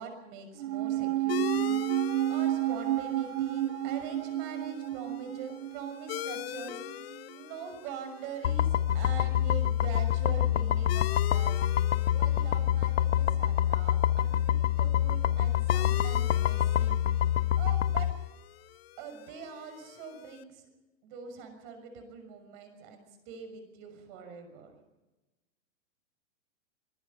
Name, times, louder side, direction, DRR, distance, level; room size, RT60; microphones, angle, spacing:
voice 1, 0.0-1.8 2.1-11.6 12.1-17.0 17.6-18.1 19.0-20.6 21.0-24.7, right 6 dB, 40° right, 7 dB, 6.3 m, -44 dB
sound 1, 0.6-7.2 7.4-7.5, right 13 dB, 70° right, 0.8 m, -31 dB
sound 2, 1.3-20.4, left 15 dB, 55° left, 0.9 m, -43 dB
sound 3, 8.4-18.1, left 11 dB, 80° left, 1.1 m, -26 dB
24.5 x 20.0 x 5.7 m, 1.0 s
hypercardioid pair, 155°, 36 cm